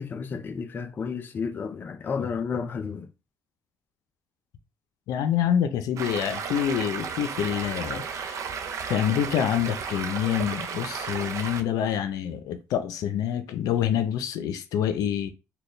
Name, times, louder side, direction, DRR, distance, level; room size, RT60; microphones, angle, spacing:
voice 1, 0.0-3.1, left 5 dB, 35° left, 0.4 m, -32 dB
voice 2, 5.1-8.5 8.9-15.3, left 9 dB, 80° left, 0.6 m, -27 dB
Stream, 6.0-11.6, right 6 dB, 55° right, 0.5 m, -33 dB
4.2 x 2.3 x 3.2 m
cardioid pair, 120°, 6 cm